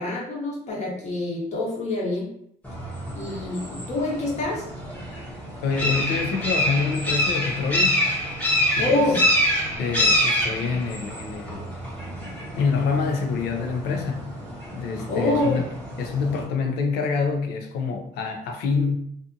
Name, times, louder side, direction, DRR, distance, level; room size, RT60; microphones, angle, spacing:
voice 1, 0.0-2.3 3.1-4.6 8.8-9.2 15.1-15.6, left 2 dB, 40° left, 1.0 m, -26 dB
sound 1, 2.6-16.4, equal, 10° left, 0.9 m, -27 dB
voice 2, 5.6-8.0 8.8-9.0 9.8-11.7 12.6-14.3 14.7-15.7 16.0-19.0, left 5 dB, 80° left, 0.5 m, -26 dB
2.6 x 2.4 x 2.5 m
cardioid pair, 110°, 17 cm